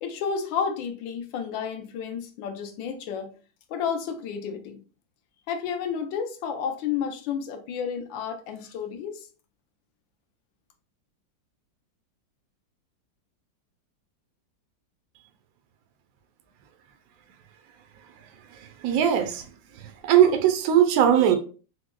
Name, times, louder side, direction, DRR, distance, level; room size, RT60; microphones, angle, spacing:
voice 1, 0.0-3.3 3.7-4.8 5.5-9.3, left 7 dB, 85° left, 1.3 m, -31 dB
voice 2, 18.8-19.4 20.1-21.4, right 9 dB, 80° right, 0.8 m, -19 dB
4.3 x 2.0 x 2.2 m
omnidirectional pair, 2.1 m